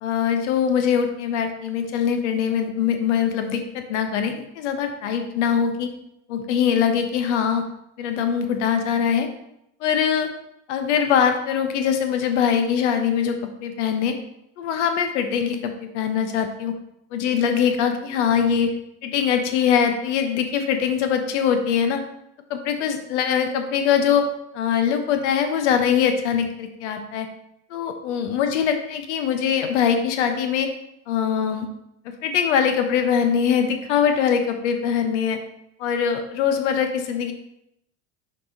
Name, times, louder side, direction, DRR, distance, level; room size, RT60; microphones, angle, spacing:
voice 1, 0.0-5.9 6.3-7.6 8.0-9.3 9.8-10.3 10.7-14.2 14.6-16.7 17.1-18.7 19.0-22.0 22.5-24.3 24.5-27.3 27.7-30.7 31.1-31.7 32.2-35.4 35.8-37.3, left 7 dB, 75° left, 6 dB, 1.2 m, -22 dB
6.5 x 5.4 x 3.8 m, 0.80 s
hypercardioid pair, 95°, 35 cm